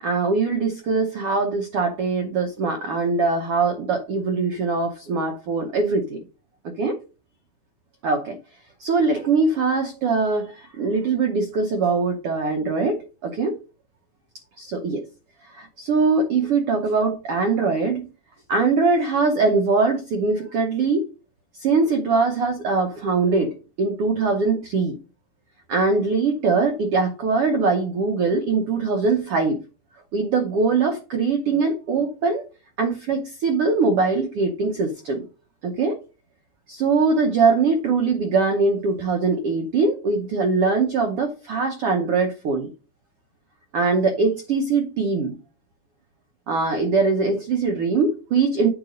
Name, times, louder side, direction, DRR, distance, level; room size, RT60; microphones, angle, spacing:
voice 1, 0.0-6.2 6.7-6.9 8.0-8.4 8.8-13.6 14.6-15.0 15.5-18.1 18.5-21.0 21.6-25.0 25.7-29.6 30.1-32.4 32.8-35.2 35.6-36.0 36.7-42.7 43.7-45.3 46.5-48.7, right 4 dB, 90° right, 4 dB, 1.2 m, -22 dB
8.9 x 4.0 x 5.1 m, 0.32 s
omnidirectional pair, 4.0 m